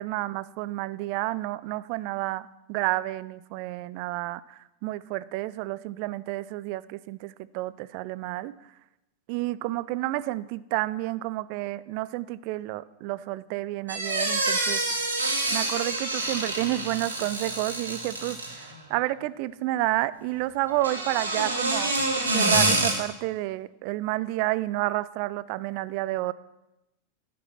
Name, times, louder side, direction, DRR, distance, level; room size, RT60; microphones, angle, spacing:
voice 1, 0.0-8.5 9.3-14.8 15.5-22.0 22.2-26.3, right 17 dB, 45° right, 18 dB, 0.3 m, -30 dB
sound 1, 13.9-18.7 20.7-22.9, right 2 dB, 75° right, 1.8 m, -27 dB
10.5 x 5.3 x 5.9 m, 0.94 s
figure-of-eight pair, 90°, 0 cm